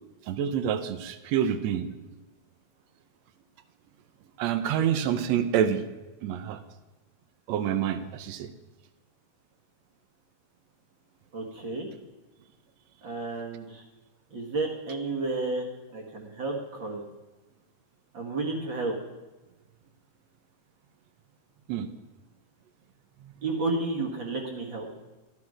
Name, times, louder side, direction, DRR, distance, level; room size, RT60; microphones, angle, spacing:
voice 1, 0.2-1.9 4.4-5.8 6.2-6.6 7.5-8.5 21.7-21.9 23.2-23.4, right 9 dB, 75° right, 11 dB, 1.7 m, -27 dB
voice 2, 11.3-11.9 13.0-13.8 14.3-15.7 15.9-17.0 18.1-18.9 23.4-24.9, right 3 dB, 45° right, 0 dB, 1.9 m, -31 dB
13.0 x 10.5 x 4.9 m, 1.1 s
omnidirectional pair, 3.7 m